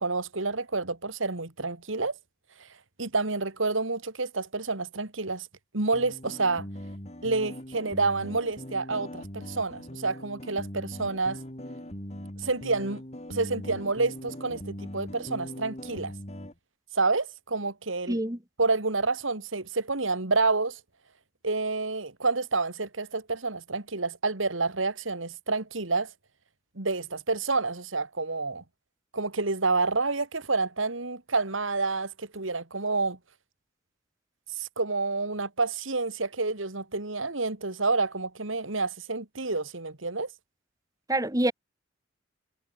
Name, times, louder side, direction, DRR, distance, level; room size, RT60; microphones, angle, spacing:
voice 1, 0.0-2.2 3.0-5.5 5.7-6.7 7.2-11.4 12.4-13.0 13.3-16.1 16.9-18.2 18.6-20.8 21.4-26.1 26.8-28.6 29.1-33.2 34.6-40.3, right 3 dB, 85° right, 2.6 m, -29 dB
sound 1, 5.9-16.5, equal, 35° left, 4.1 m, -41 dB
voice 2, 18.1-18.4 41.1-41.5, right 1 dB, 20° right, 2.5 m, -26 dB
head